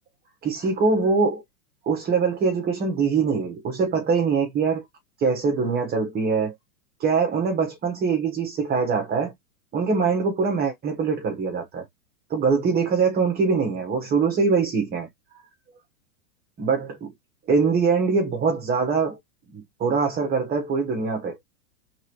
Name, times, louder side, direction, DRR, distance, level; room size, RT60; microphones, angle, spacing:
voice 1, 0.4-1.4 1.8-4.8 5.2-6.5 7.0-9.3 9.7-11.9 12.3-15.1 16.6-17.1 17.5-19.2 19.5-21.4, right 5 dB, 20° right, 1.2 m, -23 dB
4.7 x 3.5 x 3.1 m
hypercardioid pair, 115°, 44 cm